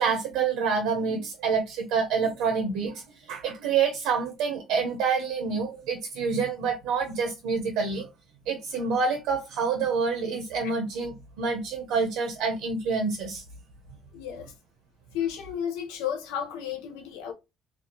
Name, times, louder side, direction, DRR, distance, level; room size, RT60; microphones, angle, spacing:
voice 1, 0.0-8.1 8.5-13.4, right 5 dB, 80° right, 0.6 m, -27 dB
voice 2, 14.1-14.5 15.1-17.3, left 9 dB, 85° left, 0.6 m, -33 dB
2.5 x 2.3 x 2.7 m
hypercardioid pair, 60°, 0 cm